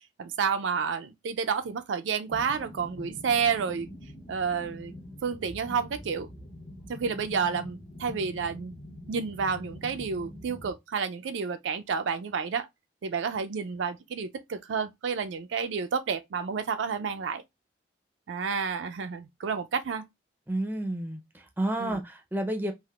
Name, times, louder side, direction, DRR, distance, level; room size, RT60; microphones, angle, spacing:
voice 1, 0.2-3.9 4.3-4.9 5.2-6.3 6.9-8.7 9.1-12.7 13.0-17.4 18.3-20.1 21.8-22.0, right 6 dB, 75° right, 0.4 m, -30 dB
sound 1, 2.3-10.7, left 1 dB, 30° left, 0.8 m, -44 dB
voice 2, 20.5-22.7, right 1 dB, 10° right, 0.5 m, -31 dB
3.4 x 2.4 x 2.3 m
head